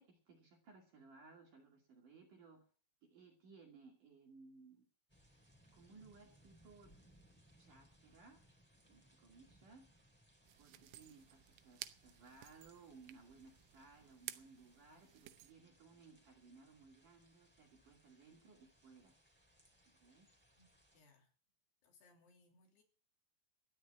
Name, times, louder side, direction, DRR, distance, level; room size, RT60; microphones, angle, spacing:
voice 1, 0.0-2.6 3.0-4.9 5.7-6.9 7.3-8.4 8.9-9.9 10.6-19.1 20.0-20.3, right 4 dB, 50° right, 2 dB, 3.4 m, -61 dB
sound 1, 5.1-21.0, equal, 5° left, 2.2 m, -70 dB
sound 2, 10.4-15.5, right 15 dB, 80° right, 3.1 m, -55 dB
voice 2, 20.9-21.3 21.8-22.8, left 3 dB, 55° left, 2 dB, 4.7 m, -69 dB
13.5 x 10.0 x 7.7 m, 0.41 s
omnidirectional pair, 5.8 m